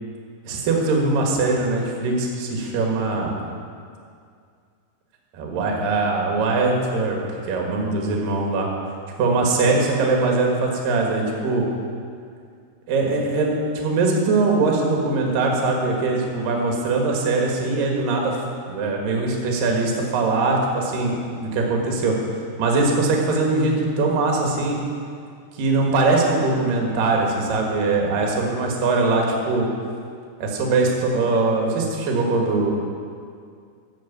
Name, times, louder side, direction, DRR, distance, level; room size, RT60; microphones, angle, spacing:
voice 1, 0.5-3.4 5.3-7.2 7.5-8.7 9.2-11.7 12.9-18.4 18.7-22.2 22.6-24.8 25.6-29.7 30.4-32.7, right 3 dB, 60° right, 0 dB, 2.8 m, -21 dB
10.5 x 7.9 x 7.2 m, 2.2 s
omnidirectional pair, 5.1 m